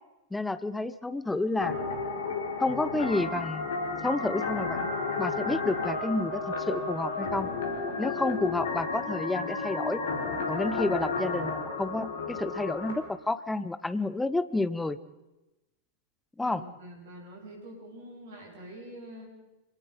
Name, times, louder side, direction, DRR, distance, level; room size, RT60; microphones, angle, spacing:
voice 1, 0.3-1.8 2.6-3.7 4.0-4.9 5.2-7.5 8.0-10.0 10.5-15.0 16.4-16.7, left 2 dB, 5° left, 14 dB, 0.8 m, -30 dB
sound 1, 1.6-12.9, left 3 dB, 60° left, 4.0 m, -32 dB
voice 2, 16.4-19.3, right 1 dB, 60° right, 0 dB, 7.9 m, -45 dB
26.5 x 18.5 x 5.4 m, 1.0 s
figure-of-eight pair, 90°, 0 cm